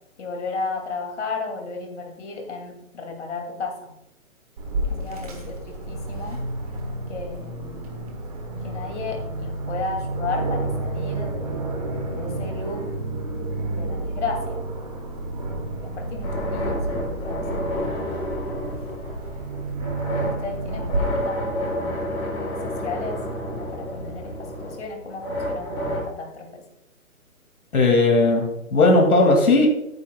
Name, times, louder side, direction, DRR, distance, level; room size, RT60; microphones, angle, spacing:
voice 1, 0.2-3.9 4.9-6.4 7.1-7.8 8.6-11.8 12.1-12.9 13.7-14.7 15.8-18.2 20.2-22.1 22.6-23.2 23.5-24.3 24.6-26.6, left 4 dB, 55° left, 2 dB, 2.7 m, -34 dB
Aircraft, 4.6-21.0, right 2 dB, 25° right, 1.2 m, -30 dB
sound 1, 16.2-26.0, equal, 10° left, 1.5 m, -30 dB
voice 2, 27.7-29.7, left 2 dB, 90° left, 2 dB, 2.4 m, -17 dB
14.0 x 9.5 x 2.3 m, 0.82 s
hypercardioid pair, 175°, 42 cm